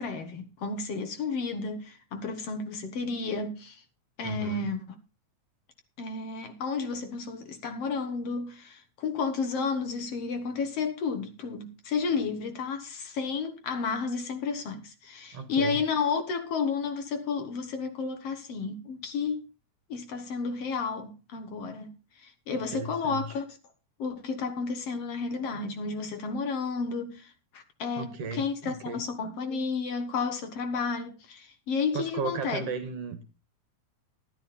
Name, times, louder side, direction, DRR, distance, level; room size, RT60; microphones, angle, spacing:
voice 1, 0.0-3.8 4.2-4.8 6.0-19.5 19.9-23.6 24.0-32.6, left 5 dB, 60° left, 2.2 m, -32 dB
voice 2, 4.2-4.7 15.3-15.8 22.7-23.3 28.0-29.0 31.9-33.3, right 4 dB, 60° right, 2.3 m, -35 dB
12.5 x 11.5 x 4.1 m
omnidirectional pair, 3.4 m